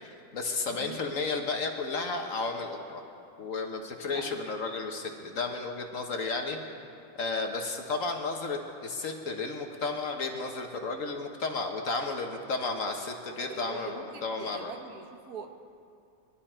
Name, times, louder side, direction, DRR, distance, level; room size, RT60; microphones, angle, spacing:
voice 1, 0.0-3.0 3.4-6.6 7.2-14.7, left 3 dB, 50° left, 3 dB, 1.3 m, -33 dB
voice 2, 0.7-1.0 4.1-4.3 13.4-15.5, right 6 dB, 60° right, 5 dB, 1.4 m, -43 dB
22.5 x 12.0 x 4.4 m, 2.5 s
omnidirectional pair, 2.0 m